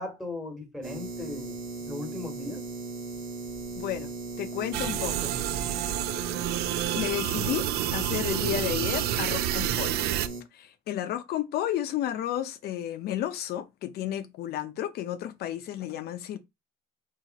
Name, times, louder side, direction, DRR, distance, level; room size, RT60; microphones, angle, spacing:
voice 1, 0.0-1.6 1.9-2.7, left 2 dB, ahead, 1.4 m, -37 dB
sound 1, 0.8-10.4, right 3 dB, 60° right, 1.4 m, -38 dB
voice 2, 3.8-4.1 4.4-5.4 6.9-7.7 7.9-10.0 10.5-16.4, left 11 dB, 70° left, 0.7 m, -32 dB
sound 2, 4.7-10.3, right 13 dB, 75° right, 0.4 m, -29 dB
4.0 x 2.8 x 4.1 m
cardioid pair, 110°, 17 cm